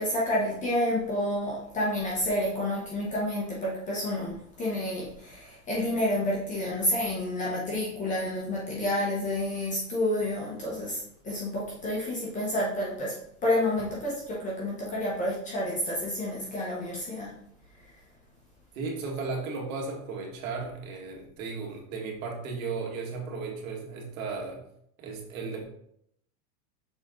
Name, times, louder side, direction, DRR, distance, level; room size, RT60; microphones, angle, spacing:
voice 1, 0.0-13.1 13.4-17.3, left 1 dB, 15° left, -5 dB, 1.1 m, -29 dB
voice 2, 18.7-24.6 25.0-25.6, right 4 dB, 65° right, 0 dB, 2.1 m, -35 dB
6.3 x 4.5 x 3.8 m, 0.72 s
supercardioid pair, 170°, 43 cm